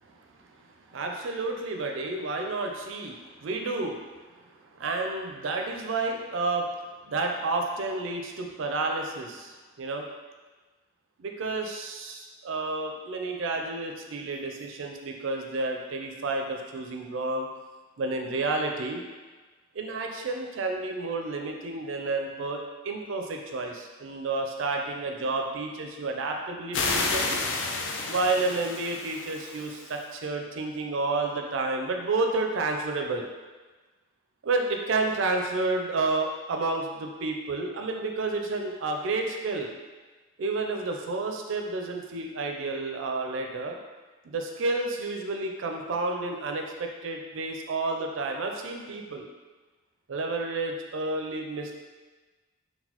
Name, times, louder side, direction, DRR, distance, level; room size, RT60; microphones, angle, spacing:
voice 1, 0.9-4.0 4.4-4.5 4.8-6.7 7.0-10.0 11.2-17.5 18.0-19.0 19.7-27.4 28.1-33.3 34.4-39.7 40.4-43.8 44.2-49.3 50.1-51.7, right 3 dB, 70° right, 2 dB, 0.4 m, -30 dB
sound 1, 26.7-30.0, left 3 dB, 60° left, 0.3 m, -31 dB
3.9 x 2.2 x 2.9 m, 1.3 s
head